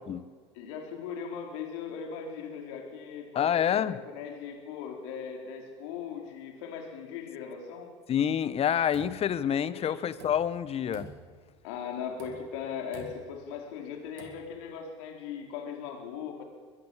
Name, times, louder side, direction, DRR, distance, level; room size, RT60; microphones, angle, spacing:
voice 1, 0.5-7.9 9.7-10.0 11.6-16.4, left 7 dB, 70° left, 2 dB, 4.9 m, -39 dB
voice 2, 3.3-4.0 8.1-11.1, left 9 dB, 40° left, 16 dB, 1.3 m, -27 dB
sound 1, 8.5-9.7 10.1-10.7 10.9-11.6 12.1-12.6 12.9-13.4 14.1-14.6, right 5 dB, 70° right, 4.1 m, -48 dB
23.0 x 20.5 x 7.6 m, 1.5 s
hypercardioid pair, 75°, 15 cm